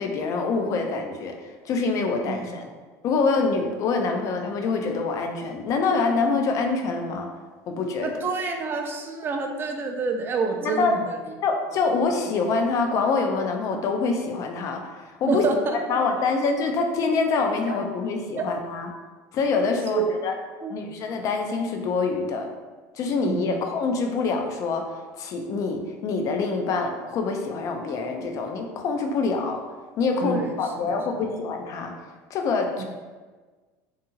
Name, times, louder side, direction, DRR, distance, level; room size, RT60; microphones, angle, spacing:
voice 1, 0.0-1.3 1.7-2.7 3.0-7.3 7.7-8.1 10.6-10.9 11.4-14.8 15.2-15.5 15.9-18.9 19.3-20.3 20.7-22.5 23.0-29.6 30.0-31.9 32.3-32.8, left 4 dB, 45° left, 4 dB, 0.4 m, -25 dB
voice 2, 2.3-2.6 8.0-11.2 15.3-16.0 17.7-17.8 18.4-18.5 19.9-20.1 20.6-20.7 23.3-23.6 30.2-31.0 32.8-32.9, right 4 dB, 30° right, 4 dB, 0.4 m, -28 dB
2.7 x 2.4 x 2.7 m, 1.4 s
supercardioid pair, 120°, 8 cm